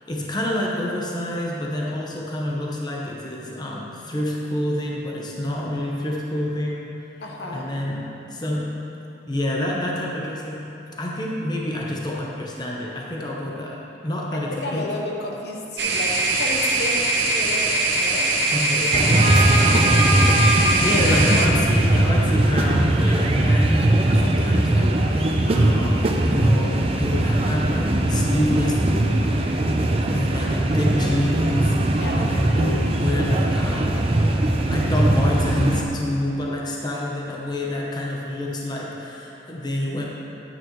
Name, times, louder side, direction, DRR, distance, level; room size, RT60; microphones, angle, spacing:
voice 1, 0.1-7.0 7.5-8.8 9.3-10.7 11.0-14.9 18.5-20.1 20.6-28.8 30.1-34.1 34.4-40.0, left 1 dB, 25° left, -3 dB, 0.8 m, -28 dB
voice 2, 7.2-7.7 14.3-18.3 18.9-20.1 21.3-21.8 31.9-32.3, left 1 dB, 65° left, -1 dB, 1.1 m, -32 dB
sound 1, 15.8-21.5, right 2 dB, 65° right, 0.9 m, -22 dB
sound 2, 18.9-35.8, right 1 dB, 35° right, 0.6 m, -20 dB
10.5 x 9.1 x 3.1 m, 2.9 s
head